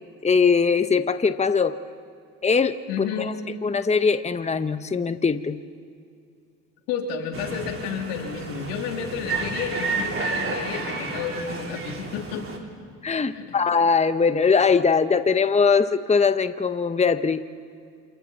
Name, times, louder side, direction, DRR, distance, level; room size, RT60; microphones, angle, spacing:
voice 1, 0.2-1.7 2.4-3.3 3.6-5.6 13.0-17.4, left 5 dB, 20° left, 11 dB, 0.9 m, -21 dB
voice 2, 2.9-3.3 6.9-12.5 13.3-13.5, left 7 dB, 90° left, 2 dB, 2.8 m, -31 dB
sound 1, 7.3-12.6, right 4 dB, 35° right, 3.9 m, -31 dB
28.5 x 27.5 x 4.2 m, 2.3 s
supercardioid pair, 70°, 35 cm